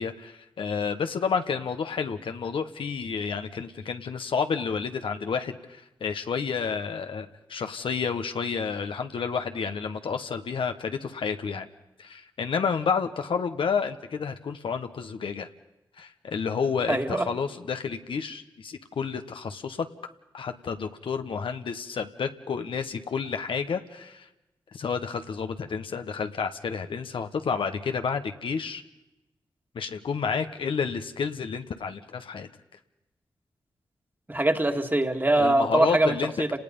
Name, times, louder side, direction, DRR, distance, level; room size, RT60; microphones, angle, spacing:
voice 1, 0.0-11.7 12.0-15.5 16.0-19.9 20.3-24.3 24.7-28.8 29.7-32.5 35.4-36.3, left 6 dB, 80° left, 7 dB, 1.2 m, -30 dB
voice 2, 16.9-17.3 34.3-36.6, right 1 dB, 20° right, 5 dB, 2.1 m, -23 dB
30.0 x 19.0 x 5.4 m, 0.98 s
cardioid pair, 40°, 9 cm